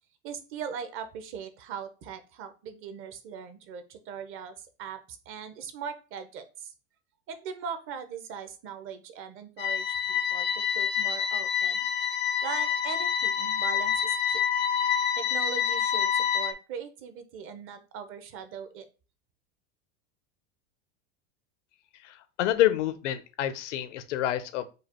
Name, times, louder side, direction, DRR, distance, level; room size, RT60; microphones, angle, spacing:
voice 1, 0.2-6.7 7.3-11.8 12.4-14.4 15.2-18.9, right 7 dB, 35° right, 9 dB, 0.8 m, -40 dB
sound 1, 9.6-16.5, left 8 dB, 30° left, 0.5 m, -27 dB
voice 2, 22.0-24.7, left 13 dB, 85° left, 12 dB, 0.8 m, -28 dB
4.9 x 2.4 x 4.3 m, 0.33 s
supercardioid pair, 145°, 35 cm